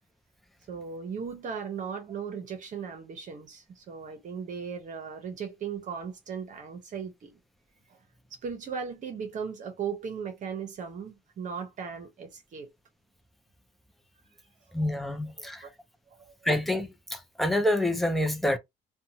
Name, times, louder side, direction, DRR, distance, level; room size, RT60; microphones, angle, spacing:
voice 1, 0.7-7.3 7.9-8.0 8.3-12.7 14.8-14.9 15.4-15.7 16.1-16.3, right 6 dB, 50° right, 0.9 m, -37 dB
voice 2, 14.7-15.6 16.4-18.6, left 1 dB, ahead, 0.6 m, -27 dB
2.6 x 2.3 x 2.8 m
cardioid pair, 110°, 17 cm